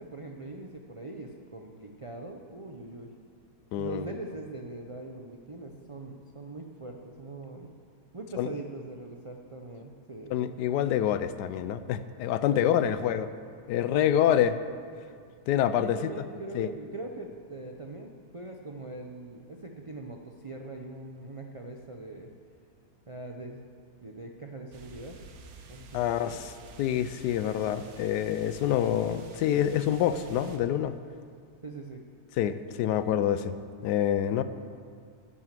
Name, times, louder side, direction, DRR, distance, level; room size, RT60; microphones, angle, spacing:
voice 1, 0.0-3.1 3.8-7.7 8.1-10.4 12.5-13.0 15.8-22.3 23.1-23.6 24.0-25.2 25.7-26.4 31.6-32.0, right 2 dB, 45° right, 1 dB, 0.4 m, -41 dB
voice 2, 3.7-4.1 8.4-8.5 10.3-13.3 13.7-14.6 15.5-16.0 16.5-16.7 25.9-26.5 26.8-30.9 32.4-33.5 33.8-34.4, left 10 dB, 90° left, 12 dB, 1.2 m, -26 dB
sound 1, 24.7-30.6, right 4 dB, 70° right, 1.4 m, -50 dB
11.0 x 8.5 x 7.5 m, 2.1 s
omnidirectional pair, 1.7 m